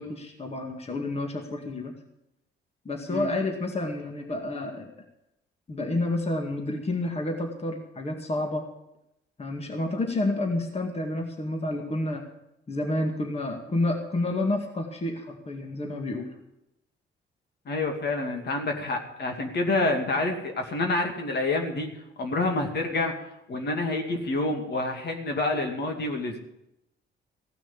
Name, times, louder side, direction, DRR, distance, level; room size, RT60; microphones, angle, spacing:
voice 1, 0.0-1.9 2.9-4.9 5.7-8.7 9.4-12.2 12.7-16.3, left 2 dB, 30° left, 4 dB, 2.2 m, -29 dB
voice 2, 17.7-21.9 22.2-23.1 23.5-26.4, left 2 dB, 55° left, 4 dB, 2.4 m, -28 dB
16.0 x 6.1 x 9.6 m, 0.84 s
cardioid pair, 90°, 20 cm